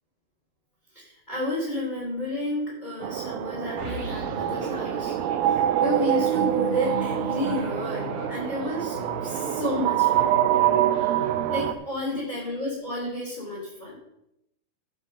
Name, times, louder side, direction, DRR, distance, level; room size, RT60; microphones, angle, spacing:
voice 1, 0.9-5.1 5.8-10.4 11.5-13.9, left 1 dB, 15° left, -7 dB, 2.8 m, -31 dB
sound 1, 3.0-11.7, right 11 dB, 85° right, 2.5 m, -25 dB
sound 2, 3.8-12.1, left 1 dB, 35° right, 1.7 m, -40 dB
14.0 x 5.6 x 5.4 m, 0.82 s
omnidirectional pair, 4.2 m